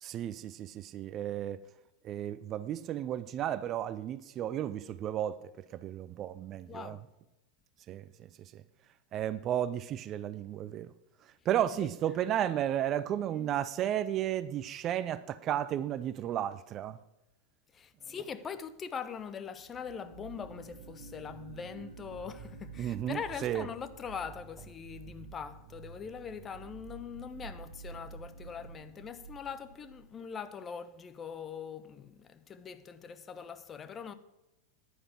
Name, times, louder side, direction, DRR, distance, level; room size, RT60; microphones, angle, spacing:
voice 1, 0.0-1.6 2.0-7.0 7.9-8.1 8.5-8.6 9.1-10.9 11.5-17.0 22.8-23.7, right 11 dB, 30° right, 0.4 m, -33 dB
voice 2, 6.7-7.0 11.8-11.9 13.3-13.5 17.7-34.1, left 7 dB, 20° left, 0.8 m, -42 dB
sound 1, 19.5-30.1, right 4 dB, 60° right, 1.6 m, -50 dB
10.0 x 9.8 x 6.1 m
figure-of-eight pair, 90°, 0 cm